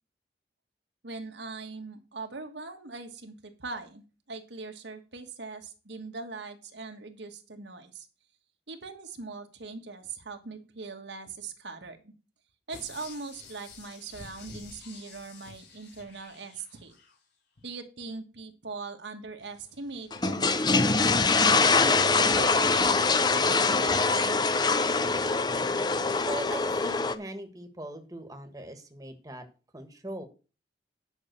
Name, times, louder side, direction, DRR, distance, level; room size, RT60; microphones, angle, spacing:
voice 1, 1.0-8.1 8.7-12.1 12.7-16.9 17.6-21.7 22.1-24.3, right 4 dB, 85° right, 5 dB, 1.5 m, -41 dB
sound 1, 12.7-17.2 17.6-17.7, left 4 dB, 85° left, 3.9 m, -49 dB
sound 2, 20.1-27.1, left 4 dB, 25° left, 0.6 m, -24 dB
voice 2, 26.2-29.4 29.7-30.2, right 1 dB, 20° right, 6 dB, 1.3 m, -40 dB
9.4 x 5.5 x 6.5 m, 0.34 s
head